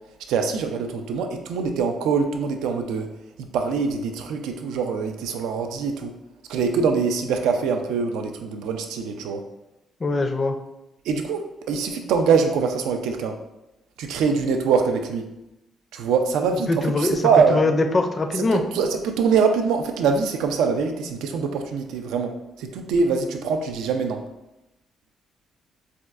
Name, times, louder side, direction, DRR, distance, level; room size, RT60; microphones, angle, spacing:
voice 1, 0.3-3.1 3.4-6.1 6.5-9.4 11.1-13.4 14.0-15.3 15.9-17.6 18.5-24.2, right 5 dB, 90° right, 6 dB, 0.3 m, -23 dB
voice 2, 10.0-10.6 16.7-17.2 17.5-18.6, left 2 dB, 35° left, 6 dB, 0.4 m, -22 dB
4.2 x 2.3 x 2.4 m, 0.92 s
cardioid pair, 90°, 0 cm